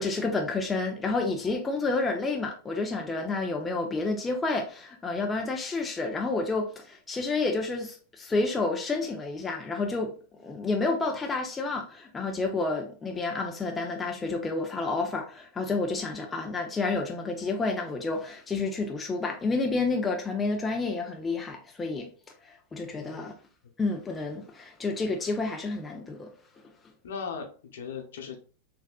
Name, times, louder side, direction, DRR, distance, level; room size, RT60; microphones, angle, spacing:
voice 1, 0.0-10.1 10.4-22.1 22.4-23.3 23.8-26.3, left 3 dB, 15° left, 0.7 m, -30 dB
voice 2, 22.9-23.3 27.0-28.4, left 6 dB, 60° left, 1.1 m, -38 dB
6.2 x 2.6 x 2.4 m
figure-of-eight pair, 90°, 0 cm